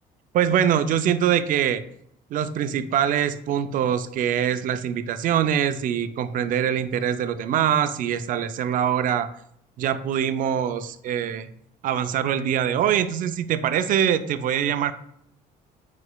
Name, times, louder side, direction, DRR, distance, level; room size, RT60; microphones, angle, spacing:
voice 1, 0.3-1.8 2.3-9.3 9.8-11.5 11.8-14.9, right 9 dB, 55° right, 12 dB, 0.4 m, -23 dB
4.9 x 4.0 x 2.2 m, 0.71 s
cardioid pair, 110°, 17 cm